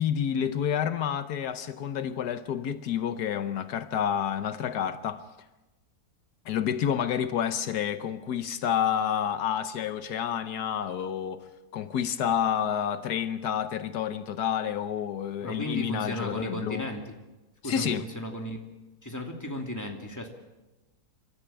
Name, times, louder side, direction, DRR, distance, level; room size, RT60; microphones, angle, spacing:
voice 1, 0.0-5.2 6.4-11.4 11.7-16.9 17.6-18.1, left 9 dB, 80° left, 1.4 m, -29 dB
voice 2, 15.4-17.1 17.6-18.6 19.0-20.3, left 1 dB, 10° left, 2.7 m, -35 dB
27.5 x 13.5 x 8.9 m
omnidirectional pair, 1.7 m